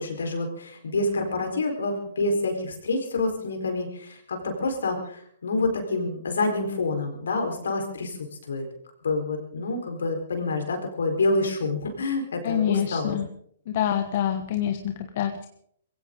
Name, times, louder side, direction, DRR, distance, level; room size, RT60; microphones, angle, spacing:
voice 1, 0.0-8.2 8.5-8.6 9.0-13.2, left 2 dB, 75° left, 4 dB, 4.4 m, -27 dB
voice 2, 12.4-13.3 13.7-15.5, left 10 dB, 50° left, 7 dB, 1.3 m, -26 dB
22.0 x 16.5 x 3.9 m, 0.67 s
figure-of-eight pair, 120°, 0 cm